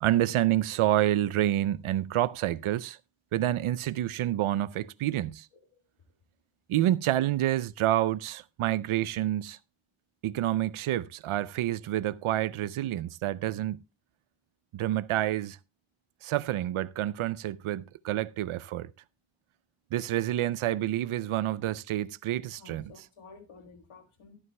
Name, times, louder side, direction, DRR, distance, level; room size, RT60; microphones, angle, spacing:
voice 1, 0.0-3.0 3.3-5.5 6.7-9.6 10.2-13.8 14.7-15.6 16.2-18.9 19.9-22.9, right 13 dB, 80° right, 0.5 m, -28 dB
voice 2, 22.6-24.4, left 4 dB, 80° left, 1.7 m, -52 dB
12.0 x 11.0 x 2.2 m
wide cardioid pair, 110°, 49 cm